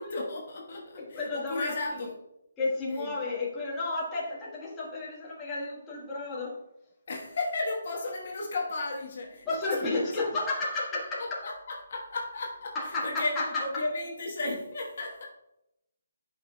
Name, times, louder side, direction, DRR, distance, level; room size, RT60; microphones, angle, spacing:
voice 1, 0.0-2.1 2.9-3.1 7.1-10.1 11.2-15.3, left 2 dB, 50° left, -1 dB, 1.2 m, -34 dB
voice 2, 1.0-2.1 2.6-6.6 9.4-11.4 12.7-13.8, left 2 dB, 10° left, -6 dB, 1.4 m, -32 dB
9.4 x 5.5 x 2.2 m, 0.84 s
hypercardioid pair, 165°, 0 cm